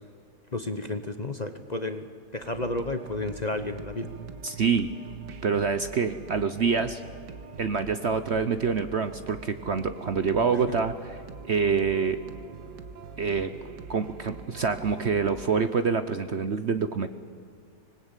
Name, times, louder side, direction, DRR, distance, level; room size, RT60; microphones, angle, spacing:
voice 1, 0.5-2.1 2.3-4.1, left 2 dB, 30° left, 9 dB, 0.9 m, -32 dB
sound 1, 2.4-15.5, right 5 dB, 85° right, 1.9 m, -43 dB
voice 2, 4.4-4.9 5.4-7.0 7.6-12.2 13.2-13.5 13.9-17.1, right 5 dB, 50° right, 11 dB, 1.0 m, -26 dB
25.5 x 20.0 x 9.0 m, 2.3 s
omnidirectional pair, 1.8 m